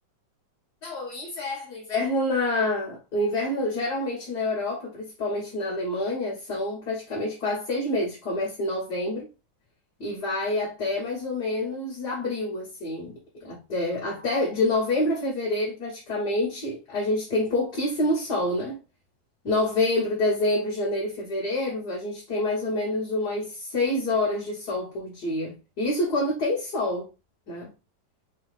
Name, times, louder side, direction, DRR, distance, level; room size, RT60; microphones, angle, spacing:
voice 1, 0.8-9.3 10.0-18.8 19.4-27.1 27.5-27.7, left 2 dB, 60° left, 2.2 m, -27 dB
4.8 x 2.4 x 3.3 m
omnidirectional pair, 2.0 m